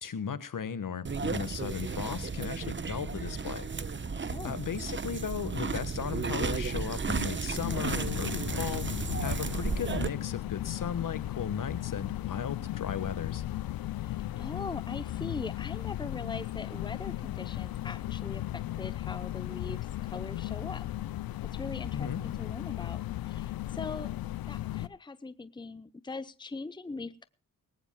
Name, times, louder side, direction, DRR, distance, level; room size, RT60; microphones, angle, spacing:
voice 1, 0.0-3.7 4.4-8.8 9.2-13.4 21.9-22.2, left 7 dB, 65° left, 14 dB, 1.5 m, -36 dB
sound 1, 1.0-10.1, right 4 dB, 35° right, 1.0 m, -34 dB
voice 2, 4.2-4.6 14.0-20.8 21.5-24.1 24.5-27.3, left 3 dB, 15° left, 15 dB, 0.8 m, -41 dB
sound 2, 7.6-24.9, left 14 dB, 90° left, 0.6 m, -36 dB
20.0 x 18.5 x 2.3 m, 0.33 s
cardioid pair, 60°, 34 cm